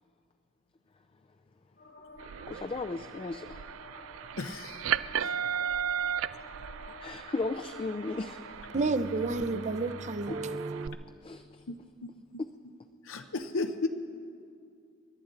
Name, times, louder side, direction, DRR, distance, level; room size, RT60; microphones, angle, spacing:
sound 1, 1.8-10.7, left 2 dB, 60° left, 1.3 m, -51 dB
sound 2, 2.2-10.9, right 8 dB, 90° right, 0.4 m, -36 dB
voice 1, 2.5-3.6 4.9-5.4 7.0-8.4 11.2-11.4, left 3 dB, 25° left, 0.3 m, -36 dB
voice 2, 4.4-4.8 8.9-9.6 11.7-12.1 13.0-13.9, left 3 dB, 85° left, 0.7 m, -35 dB
voice 3, 8.7-11.0, right 3 dB, 35° right, 0.5 m, -31 dB
29.0 x 11.5 x 3.8 m
head